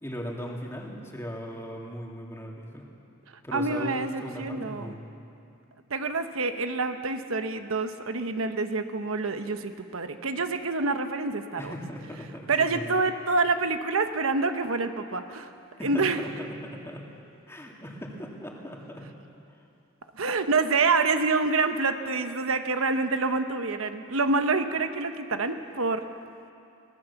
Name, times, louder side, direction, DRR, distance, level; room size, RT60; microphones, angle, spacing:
voice 1, 0.0-2.9 3.4-5.1 11.6-13.0 15.8-17.1 17.5-19.1, equal, 10° left, -1 dB, 2.5 m, -38 dB
voice 2, 3.5-4.9 5.9-11.7 12.5-15.5 15.8-16.2 20.1-26.0, right 3 dB, 80° right, 8 dB, 1.0 m, -27 dB
23.0 x 18.5 x 7.1 m, 2.6 s
head